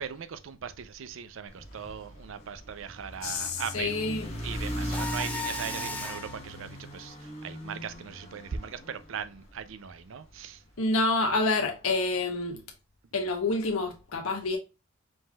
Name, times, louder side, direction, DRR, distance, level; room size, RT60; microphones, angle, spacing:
voice 1, 0.0-10.6, right 7 dB, 65° right, 0.5 m, -39 dB
sound 1, 1.5-9.8, equal, 30° left, 1.6 m, -39 dB
voice 2, 3.2-4.3 10.8-12.6 13.1-14.6, left 3 dB, 80° left, 0.9 m, -28 dB
Mechanisms, 4.9-6.4, left 2 dB, 5° left, 0.6 m, -35 dB
5.2 x 3.6 x 2.2 m
head